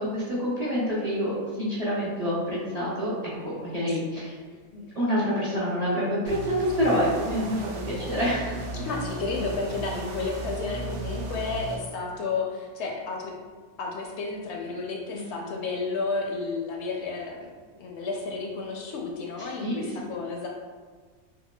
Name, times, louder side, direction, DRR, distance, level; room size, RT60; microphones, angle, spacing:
voice 1, 0.1-3.1 3.4-4.3 4.7-8.8 15.1-15.5 19.4-19.9, equal, 40° right, -8 dB, 0.7 m, -27 dB
sound 1, 6.3-11.8, right 2 dB, 75° right, 0.9 m, -35 dB
voice 2, 8.8-13.3 13.8-17.5 17.8-20.5, left 4 dB, 70° left, 0 dB, 0.8 m, -32 dB
5.3 x 2.1 x 2.2 m, 1.4 s
omnidirectional pair, 1.3 m